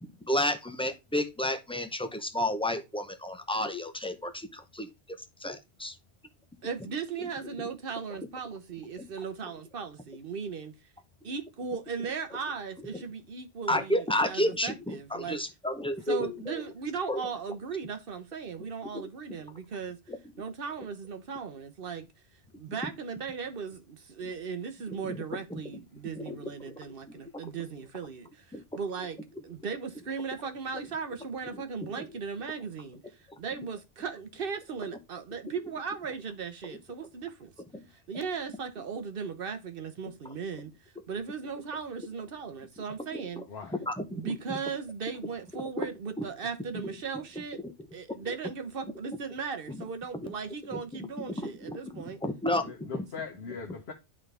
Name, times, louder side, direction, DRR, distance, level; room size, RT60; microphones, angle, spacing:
voice 1, 0.0-4.9 5.4-5.9 7.2-7.3 7.6-7.7 9.0-9.1 13.7-16.7 17.1-17.2 18.9-19.0 25.1-25.2 25.5-25.6 26.2-26.3 26.7-26.8 27.1-27.2 28.5-28.6 37.7-37.8 43.1-43.2 43.8-44.6 45.5-45.9 46.2-46.3 49.7-49.8 50.1-50.3 50.9-51.1 51.4-53.1, left 1 dB, 5° left, 0.6 m, -32 dB
voice 2, 6.6-10.7 11.2-15.4 16.1-20.0 20.4-22.1 22.6-29.2 29.4-37.5 37.9-42.5 42.8-43.4 44.1-47.6 47.9-52.2, right 5 dB, 50° right, 1.1 m, -37 dB
voice 3, 52.6-53.9, left 5 dB, 60° left, 1.3 m, -40 dB
11.0 x 3.8 x 3.4 m
omnidirectional pair, 1.2 m